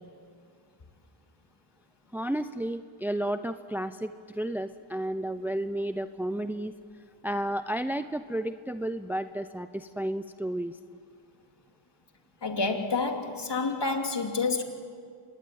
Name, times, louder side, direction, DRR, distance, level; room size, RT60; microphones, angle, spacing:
voice 1, 2.1-6.7 7.2-10.8, right 1 dB, 5° right, 10 dB, 0.7 m, -32 dB
voice 2, 12.4-14.6, left 4 dB, 55° left, 4 dB, 2.9 m, -28 dB
26.0 x 20.0 x 8.9 m, 2.2 s
cardioid pair, 60°, 49 cm